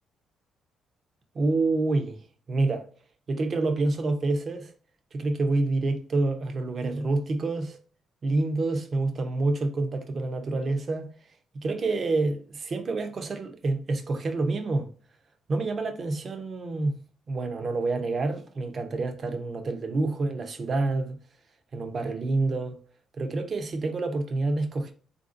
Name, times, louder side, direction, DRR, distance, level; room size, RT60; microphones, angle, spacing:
voice 1, 1.3-2.2 2.5-2.9 3.3-4.7 5.1-7.8 8.2-11.1 11.5-14.9 15.5-17.0 17.3-21.2 21.7-22.8 23.2-24.9, right 3 dB, 45° right, 0.6 m, -27 dB
3.4 x 2.6 x 2.4 m
cardioid pair, 90°, 0 cm